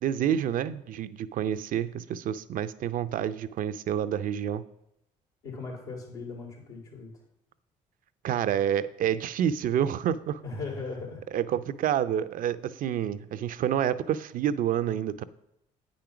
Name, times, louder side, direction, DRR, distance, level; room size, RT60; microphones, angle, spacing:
voice 1, 0.0-4.6 8.2-10.4 11.3-15.2, right 9 dB, 60° right, 13 dB, 0.5 m, -28 dB
voice 2, 5.4-7.1 10.4-11.2, left 4 dB, 85° left, -3 dB, 3.0 m, -38 dB
8.8 x 5.1 x 5.9 m, 0.82 s
supercardioid pair, 60°, 16 cm